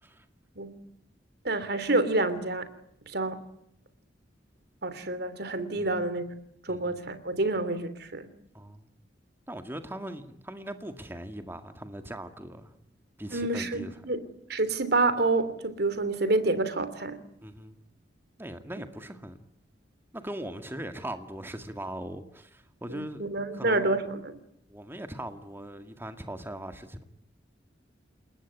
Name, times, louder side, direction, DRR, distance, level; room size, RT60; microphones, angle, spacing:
voice 1, 1.4-2.7 3.1-3.4 4.8-6.2 6.6-8.3 13.3-17.2 22.9-24.4, right 2 dB, 60° right, 3.1 m, -28 dB
voice 2, 6.7-7.0 8.5-8.9 9.5-12.8 13.2-14.0 17.4-17.8 18.4-19.4 20.1-23.2 23.5-24.0 24.7-27.0, right 1 dB, 15° right, 1.9 m, -40 dB
29.5 x 19.5 x 9.6 m
head